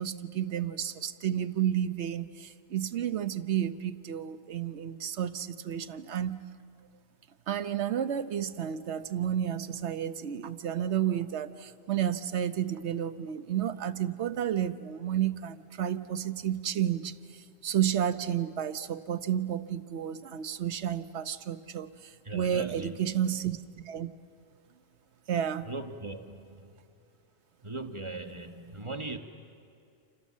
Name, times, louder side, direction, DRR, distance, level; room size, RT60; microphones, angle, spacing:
voice 1, 0.0-6.4 7.5-24.1 25.3-25.7, right 10 dB, 90° right, 12 dB, 1.2 m, -31 dB
voice 2, 22.2-22.9 25.7-26.8 27.6-29.2, right 2 dB, 30° right, 6 dB, 1.3 m, -39 dB
29.5 x 27.5 x 7.4 m, 2.4 s
omnidirectional pair, 1.1 m